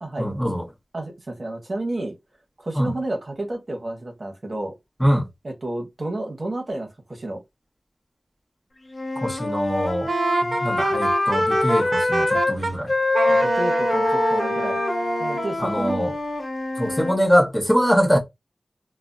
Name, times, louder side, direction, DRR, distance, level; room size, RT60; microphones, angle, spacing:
voice 1, 0.2-0.6 2.7-2.9 5.0-5.3 9.2-10.1 10.4-12.9 15.6-16.1 16.8-18.2, equal, 10° left, 0.9 m, -22 dB
voice 2, 0.9-2.2 2.6-4.7 5.4-7.4 13.3-14.8 15.2-16.1, right 1 dB, 50° right, 0.9 m, -31 dB
Wind instrument woodwind instrument, 8.9-12.5 12.9-17.2, left 2 dB, 65° left, 0.6 m, -24 dB
Wind instrument woodwind instrument 2, 10.1-12.7 13.1-15.5, right 3 dB, 80° right, 0.4 m, -26 dB
3.3 x 2.1 x 2.5 m
wide cardioid pair, 75°, 0 cm